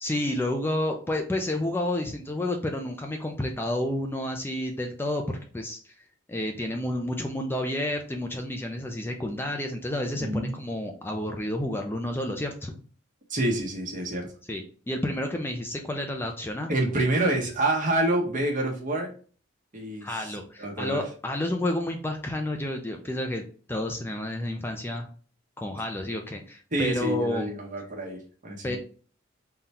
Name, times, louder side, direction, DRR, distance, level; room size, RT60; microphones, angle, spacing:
voice 1, 0.0-5.9 6.3-12.8 14.5-16.7 20.0-23.4 23.7-25.1 25.6-27.5 28.6-28.8, left 1 dB, 10° left, 3 dB, 0.4 m, -30 dB
voice 2, 10.2-10.5 13.3-14.3 16.7-19.1 19.7-20.3 20.6-21.0 26.7-28.8, right 1 dB, 40° right, 0 dB, 1.0 m, -27 dB
3.8 x 2.2 x 4.1 m, 0.41 s
head